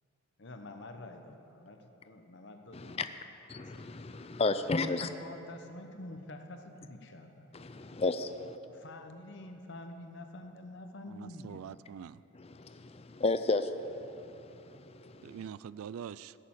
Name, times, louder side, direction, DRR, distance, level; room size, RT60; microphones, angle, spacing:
voice 1, 0.4-1.8 2.0-3.1 3.5-3.9 5.2-7.5 8.7-11.8, left 2 dB, 55° left, 1.0 m, -47 dB
voice 2, 3.5-5.1 7.5-8.6 12.4-15.4, left 3 dB, 30° left, 0.4 m, -33 dB
voice 3, 11.1-12.2 15.2-16.4, right 7 dB, 80° right, 0.3 m, -44 dB
16.5 x 6.7 x 7.4 m
head